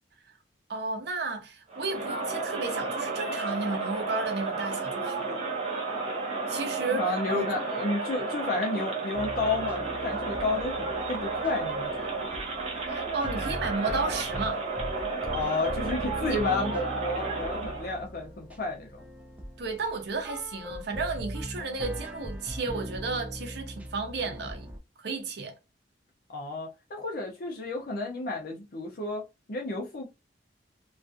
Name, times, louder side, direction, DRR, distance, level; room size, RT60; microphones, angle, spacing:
voice 1, 0.7-5.4 6.5-7.5 12.8-14.6 16.1-16.7 19.6-24.7 25.0-25.6, right 3 dB, 65° right, 0.6 m, -33 dB
Crowd, 1.7-18.0, right 3 dB, 35° right, 0.7 m, -32 dB
voice 2, 6.8-12.2 15.3-18.9 26.3-30.1, left 3 dB, 55° left, 0.6 m, -32 dB
sound 1, 9.1-24.8, equal, 10° right, 0.4 m, -40 dB
2.4 x 2.3 x 2.5 m
head